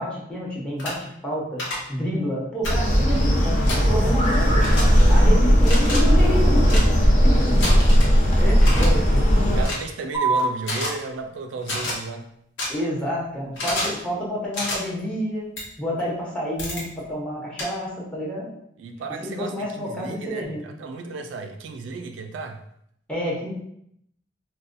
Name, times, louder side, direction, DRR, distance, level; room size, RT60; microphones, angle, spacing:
voice 1, 0.0-1.6 1.9-4.7 5.1-7.7 8.4-9.3 12.7-15.4 15.8-18.5 19.2-20.6 23.1-23.5, equal, 5° left, -5 dB, 0.9 m, -29 dB
sound 1, 0.8-0.9 1.6-1.8 2.6-2.8 3.7-3.8 4.6-4.8 5.6-6.0 6.6-6.9 7.6-8.1 8.6-8.9 9.6-9.8 10.6-10.9 11.6-11.9 12.6-12.7 13.6-14.0 14.5-14.8 15.6-15.7 16.6-16.8 17.6-17.7, left 1 dB, 80° left, 1.0 m, -28 dB
sound 2, 2.6-9.6, equal, 40° left, 0.7 m, -17 dB
voice 2, 8.3-8.9 9.4-12.3 18.8-22.6, right 3 dB, 75° right, 5 dB, 0.3 m, -34 dB
sound 3, 10.1-17.1, right 3 dB, 20° right, 0.8 m, -33 dB
3.9 x 2.2 x 2.5 m, 0.72 s
head